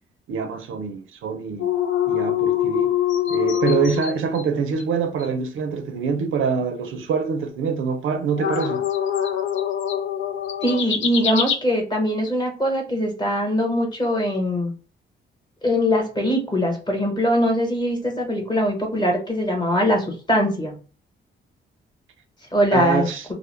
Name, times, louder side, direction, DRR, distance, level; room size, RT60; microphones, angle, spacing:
voice 1, 0.3-1.7 2.1-2.9 3.3-8.9 22.7-23.2, right 6 dB, 85° right, 0.6 m, -25 dB
sound 1, 1.6-4.5 4.8-4.9 5.2-5.3 8.4-11.6, left 10 dB, 75° left, 0.4 m, -23 dB
voice 2, 10.6-14.7 15.6-20.8 22.5-23.1, equal, 20° left, 1.0 m, -22 dB
2.2 x 2.0 x 3.2 m
cardioid pair, 100°, 20 cm